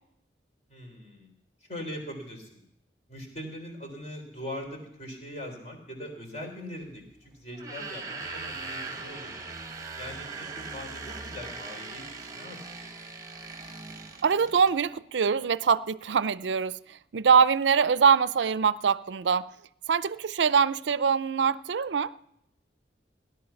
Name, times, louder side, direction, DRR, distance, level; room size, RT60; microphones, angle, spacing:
voice 1, 0.7-1.3 1.7-2.5 3.1-9.3 10.0-12.9, left 1 dB, 40° left, 3.7 m, -41 dB
sound 1, 7.5-14.8, right 3 dB, 20° right, 1.1 m, -40 dB
voice 2, 14.2-19.5 19.9-22.1, right 6 dB, 90° right, 0.5 m, -23 dB
17.0 x 11.0 x 5.8 m
head